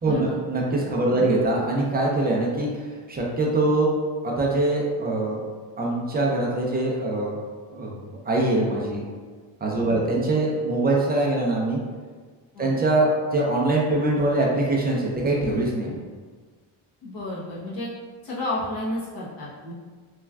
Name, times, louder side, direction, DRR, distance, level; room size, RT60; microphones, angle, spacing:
voice 1, 0.0-3.9 4.2-5.5 5.8-7.4 7.7-8.0 8.3-9.0 9.6-11.8 12.6-16.0, right 2 dB, 20° right, -3 dB, 0.4 m, -23 dB
voice 2, 17.0-17.9 18.2-19.7, left 1 dB, 45° left, -8 dB, 1.0 m, -32 dB
3.2 x 2.3 x 2.2 m, 1.5 s
cardioid pair, 110°, 46 cm